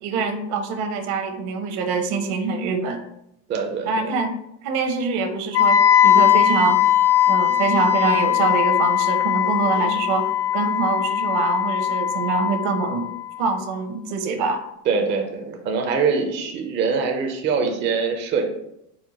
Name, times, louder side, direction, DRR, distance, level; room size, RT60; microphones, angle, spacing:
voice 1, 0.0-3.0 3.8-4.4 4.6-6.8 7.3-13.1 13.4-14.6, right 4 dB, 60° right, 6 dB, 0.8 m, -24 dB
voice 2, 3.5-4.1 9.7-10.0 14.9-18.5, right 5 dB, 25° right, 3 dB, 0.4 m, -24 dB
Wind instrument woodwind instrument, 5.5-13.5, left 10 dB, 35° left, 0.6 m, -20 dB
4.5 x 2.1 x 4.1 m, 0.80 s
supercardioid pair, 120°, 44 cm